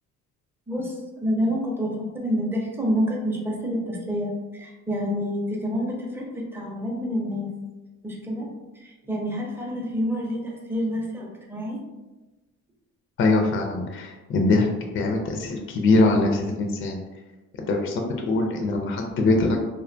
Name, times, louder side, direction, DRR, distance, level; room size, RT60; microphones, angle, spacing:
voice 1, 1.2-7.5 8.0-8.5 8.8-11.8, equal, 10° right, -2 dB, 0.5 m, -28 dB
voice 2, 13.2-14.7 14.9-17.0 17.6-19.6, left 2 dB, 45° left, 2 dB, 0.4 m, -22 dB
2.5 x 2.2 x 2.5 m, 1.1 s
cardioid pair, 90°, 30 cm